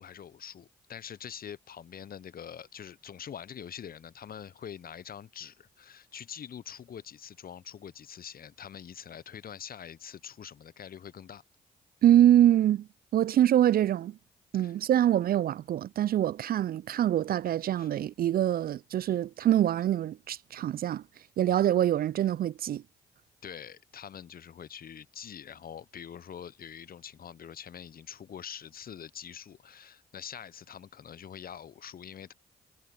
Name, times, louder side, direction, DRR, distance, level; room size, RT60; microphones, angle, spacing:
voice 1, 0.0-11.4 14.6-14.7 17.8-17.9 23.4-32.3, left 8 dB, 50° left, 0.9 m, -44 dB
voice 2, 12.0-14.2 14.5-21.0 21.4-22.8, right 11 dB, 50° right, 0.4 m, -25 dB
hypercardioid pair, 40°, 19 cm